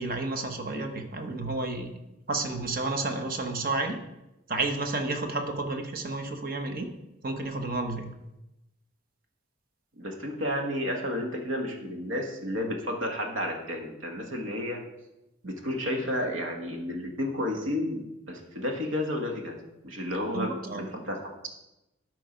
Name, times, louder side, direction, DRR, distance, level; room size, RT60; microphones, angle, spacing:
voice 1, 0.0-1.9 2.3-4.0 4.5-6.9 7.2-8.1 20.3-20.9, right 2 dB, 45° right, 5 dB, 1.1 m, -31 dB
voice 2, 9.9-14.8 15.4-19.6 19.8-21.2, left 1 dB, 70° right, 2 dB, 1.5 m, -31 dB
12.5 x 4.6 x 5.1 m, 0.94 s
head